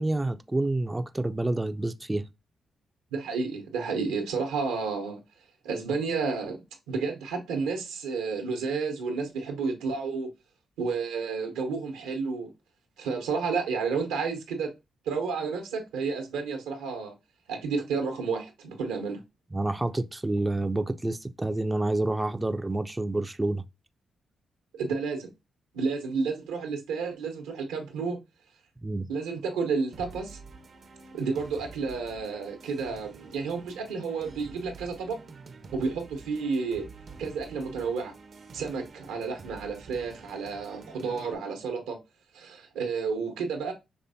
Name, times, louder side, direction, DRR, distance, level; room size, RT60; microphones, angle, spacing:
voice 1, 0.0-2.2 19.5-23.6 28.8-29.1, right 2 dB, 20° right, 0.4 m, -28 dB
voice 2, 3.1-5.2 5.6-10.3 10.8-12.5 13.0-14.7 15.1-17.1 17.5-19.2 24.7-25.3 25.7-28.2 29.1-30.4 31.1-35.2 35.7-36.9 37.2-38.1 38.5-42.0 42.3-43.7, right 5 dB, 85° right, 0.9 m, -31 dB
sound 1, 29.9-41.3, right 4 dB, 55° right, 0.7 m, -48 dB
5.7 x 3.3 x 2.7 m
hypercardioid pair, 45°, 0 cm